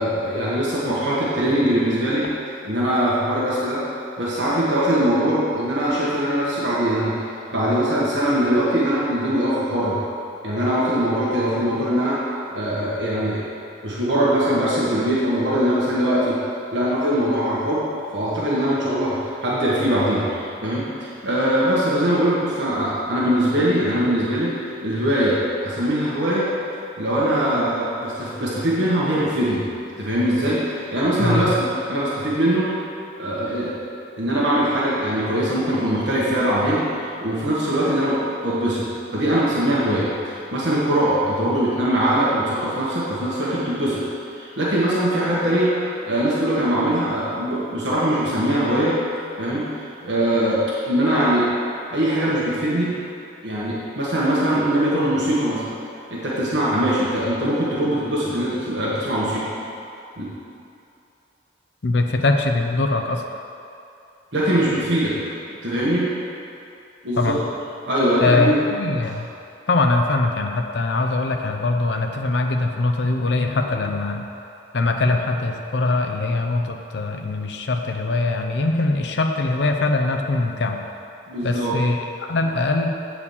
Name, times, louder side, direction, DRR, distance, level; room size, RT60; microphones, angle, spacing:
voice 1, 0.0-2.2 2.6-3.8 4.2-7.1 7.5-10.0 10.4-12.2 12.5-13.4 13.8-16.4 16.7-17.9 18.1-24.5 24.8-26.5 27.0-29.6 30.0-32.7 33.2-33.7 34.2-45.7 46.0-48.9 49.4-51.5 51.9-52.9 53.4-55.7 56.1-59.5 60.2-60.3 64.3-65.1 65.6-66.1 67.0-67.3 67.9-68.6 81.3-81.7, right 1 dB, 70° right, -7 dB, 1.5 m, -22 dB
voice 2, 61.8-63.2 67.2-67.4 68.2-69.3 69.7-74.2 74.7-80.8 81.4-82.9, left 2 dB, 65° left, 4 dB, 0.6 m, -22 dB
8.2 x 4.9 x 7.2 m, 2.7 s
head